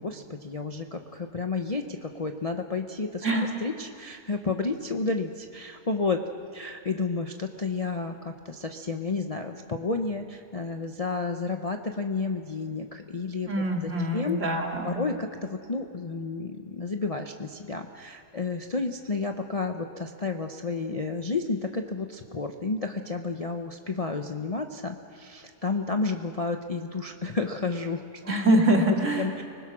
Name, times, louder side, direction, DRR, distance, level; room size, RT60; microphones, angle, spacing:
voice 1, 0.0-6.2 6.5-14.4 14.8-28.0 29.2-29.4, left 3 dB, 30° left, 4 dB, 0.7 m, -31 dB
voice 2, 13.5-15.0 28.3-29.3, right 1 dB, 50° right, 1 dB, 2.8 m, -24 dB
30.0 x 20.5 x 6.1 m, 2.5 s
omnidirectional pair, 1.6 m